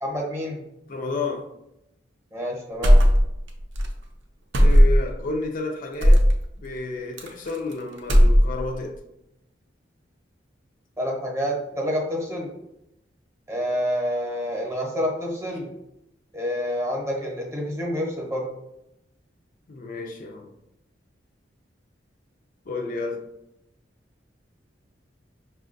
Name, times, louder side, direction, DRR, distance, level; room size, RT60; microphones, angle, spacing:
voice 1, 0.0-0.6 2.3-3.0 11.0-12.6 13.5-15.7 16.3-18.5, equal, 15° right, 0.8 m, -28 dB
voice 2, 0.9-1.5 4.6-6.3 6.6-9.0 19.7-20.5 22.7-23.3, left 3 dB, 50° left, 0.4 m, -31 dB
sound 1, 2.8-3.5 3.7-3.9 4.5-5.2 6.0-6.3 7.2-7.7 8.0-8.7, equal, 75° right, 0.6 m, -15 dB
5.7 x 2.2 x 2.5 m
head